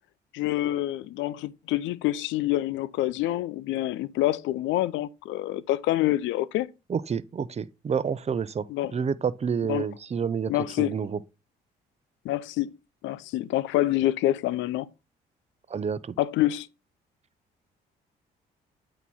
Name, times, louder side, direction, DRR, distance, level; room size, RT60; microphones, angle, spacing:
voice 1, 0.3-6.7 8.7-8.9 9.7-9.8 10.5-10.9 12.2-12.7 13.0-14.9 16.2-16.7, left 15 dB, 75° left, 0.4 m, -26 dB
voice 2, 6.9-8.7 8.9-10.5 10.8-11.2 15.7-16.1, right 6 dB, 35° right, 0.6 m, -29 dB
8.3 x 3.0 x 5.4 m
supercardioid pair, 60°, 20 cm